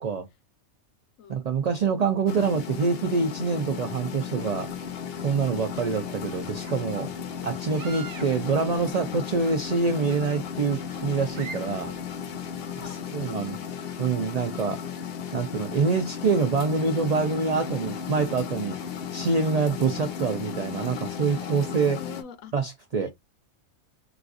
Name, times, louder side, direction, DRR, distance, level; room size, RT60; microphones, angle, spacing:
voice 1, 1.3-4.7 5.2-7.1 7.4-11.9 12.8-13.6 14.0-14.8 15.3-18.8 19.1-22.0 22.5-23.1, right 4 dB, 55° right, 0.4 m, -26 dB
sound 1, 2.3-22.2, left 7 dB, 60° left, 0.7 m, -35 dB
sound 2, 4.2-12.9, right 6 dB, 80° right, 1.1 m, -48 dB
voice 2, 12.6-14.1 21.7-22.5 22.9-23.1, left 8 dB, 85° left, 1.0 m, -45 dB
4.0 x 2.4 x 2.4 m
omnidirectional pair, 1.3 m